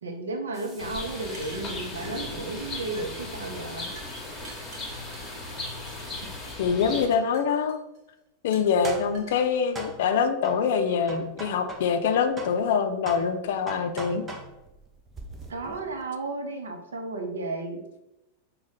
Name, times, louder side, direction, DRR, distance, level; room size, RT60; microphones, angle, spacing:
voice 1, 0.0-3.9 15.5-17.8, right 2 dB, 65° right, 4 dB, 0.6 m, -33 dB
sound 1, 0.5-6.7 8.5-12.1 12.4-16.0, right 2 dB, 20° right, 0.6 m, -44 dB
Bird, 0.8-7.1, left 2 dB, 20° left, 1.0 m, -37 dB
sound 2, 1.3-2.7 2.9-3.3 3.8-5.3 5.9-6.5 7.0-8.0 8.5-9.4, right 3 dB, 45° right, 1.3 m, -49 dB
voice 2, 6.6-7.8 8.4-14.3, left 6 dB, 55° left, 7 dB, 0.4 m, -24 dB
4.9 x 2.2 x 3.9 m, 0.92 s
figure-of-eight pair, 90°, 0 cm